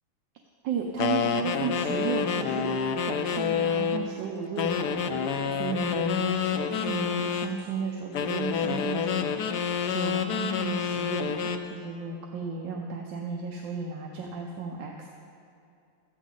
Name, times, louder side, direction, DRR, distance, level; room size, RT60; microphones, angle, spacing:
voice 1, 0.6-2.8 3.0-9.5 9.8-15.1, right 5 dB, 70° right, 1 dB, 1.3 m, -34 dB
sound 1, 1.0-4.1 4.6-7.5 8.1-11.7, left 7 dB, 70° left, 0.9 m, -28 dB
13.5 x 9.3 x 3.9 m, 2.5 s
omnidirectional pair, 2.2 m